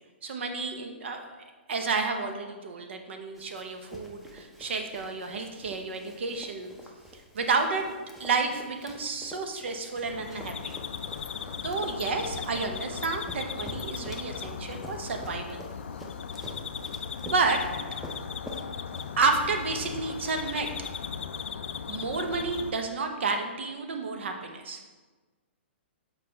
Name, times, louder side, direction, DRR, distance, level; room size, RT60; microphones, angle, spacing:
voice 1, 0.2-1.2 1.7-6.7 7.3-10.7 11.6-15.6 17.2-17.6 19.2-20.7 21.9-24.8, right 4 dB, 70° right, 5 dB, 0.7 m, -30 dB
Run, 3.4-19.5, equal, ahead, 0.5 m, -47 dB
sound 1, 10.0-22.7, left 7 dB, 80° left, 0.4 m, -37 dB
7.3 x 4.0 x 3.3 m, 1.3 s
hypercardioid pair, 150°, 6 cm